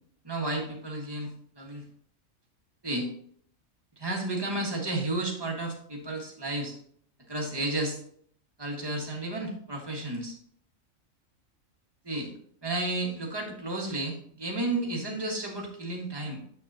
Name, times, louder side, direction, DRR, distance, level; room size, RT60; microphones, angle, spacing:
voice 1, 0.2-1.8 2.8-3.1 4.0-6.8 7.3-8.0 8.6-10.4 12.0-12.3 12.6-16.4, right 2 dB, 20° right, 0 dB, 1.5 m, -32 dB
8.3 x 6.6 x 2.8 m, 0.62 s
omnidirectional pair, 1.4 m